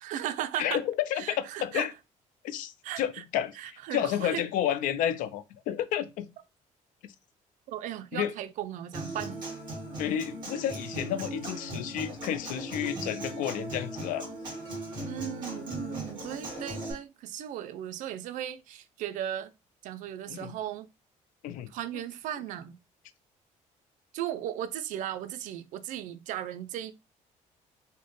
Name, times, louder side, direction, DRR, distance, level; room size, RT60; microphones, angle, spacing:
voice 1, 0.0-0.8 1.1-1.9 2.8-3.2 3.6-4.4 7.7-9.5 15.0-19.5 19.8-20.9 21.7-22.8 24.1-26.9, right 11 dB, 70° right, 0.4 m, -36 dB
voice 2, 0.6-1.9 2.4-3.5 3.9-6.3 8.1-8.3 10.0-14.3 20.3-20.5 21.4-21.7, left 10 dB, 80° left, 0.4 m, -31 dB
Human voice / Acoustic guitar, 8.9-16.9, right 1 dB, 35° right, 1.9 m, -38 dB
4.2 x 2.1 x 3.1 m
cardioid pair, 155°, 14 cm